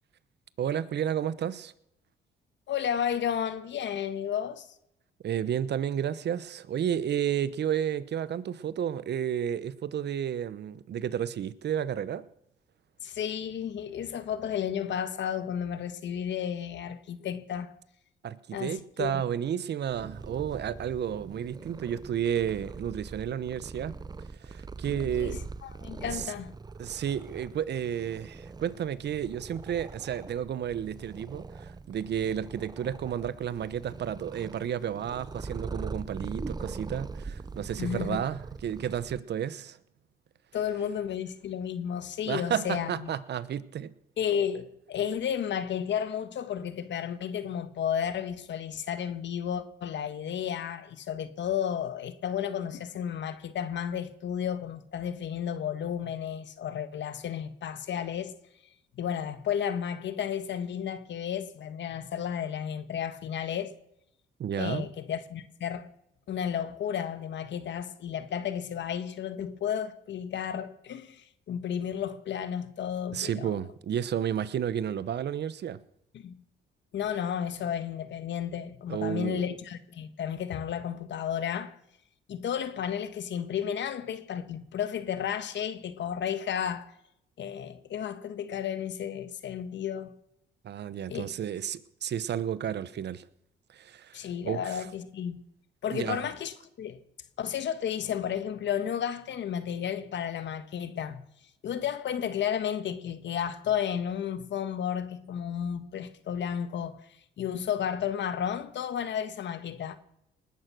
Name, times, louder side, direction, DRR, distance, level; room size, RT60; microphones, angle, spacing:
voice 1, 0.6-1.7 5.2-12.2 18.2-24.0 24.4-25.4 26.1-26.3 26.8-39.8 42.3-43.9 64.4-64.9 73.1-75.8 78.9-79.6 90.6-93.2 93.7-94.8 95.9-96.2, right 9 dB, 60° right, 1.0 m, -32 dB
voice 2, 2.7-4.7 13.0-17.7 18.5-19.2 24.9-26.5 37.8-38.2 40.5-43.1 44.2-58.3 58.9-63.7 64.6-65.9 66.3-73.6 76.1-76.4 76.9-81.7 82.3-86.9 87.4-90.1 91.1-91.3 94.1-95.4 95.8-97.0 97.4-101.2 101.6-107.1 107.4-109.9, left 9 dB, 65° left, 1.5 m, -32 dB
Purr, 19.9-39.2, right 4 dB, 20° right, 0.6 m, -42 dB
20.0 x 11.5 x 6.3 m
cardioid pair, 90°, 20 cm